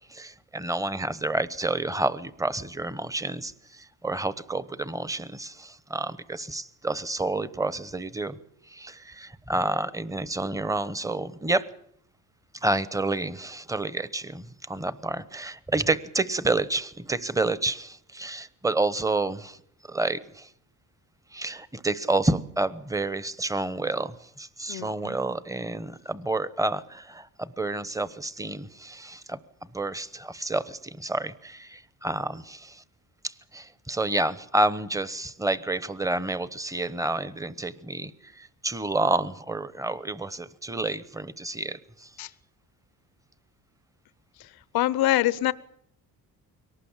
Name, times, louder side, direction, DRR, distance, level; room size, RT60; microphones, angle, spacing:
voice 1, 0.1-8.4 8.7-11.7 12.5-19.6 19.9-20.5 21.3-29.4 29.7-32.8 33.2-42.1, right 2 dB, 10° right, 0.9 m, -29 dB
voice 2, 24.7-25.1 42.2-42.3 44.7-45.5, left 15 dB, 80° left, 0.9 m, -24 dB
23.0 x 18.5 x 7.3 m
cardioid pair, 120°, 37 cm